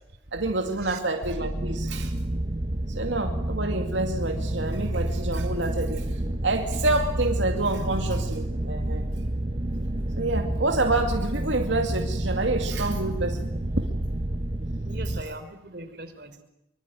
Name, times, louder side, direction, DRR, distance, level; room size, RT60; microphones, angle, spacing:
voice 1, 0.3-2.1 2.9-9.1 10.2-13.5 13.7-13.9 15.1-15.2, right 2 dB, 85° right, 4 dB, 2.4 m, -28 dB
sound 1, 1.2-15.2, right 1 dB, 30° right, 1.1 m, -29 dB
voice 2, 14.8-16.4, right 1 dB, 55° right, 8 dB, 3.9 m, -40 dB
24.5 x 24.5 x 9.2 m, 0.85 s
head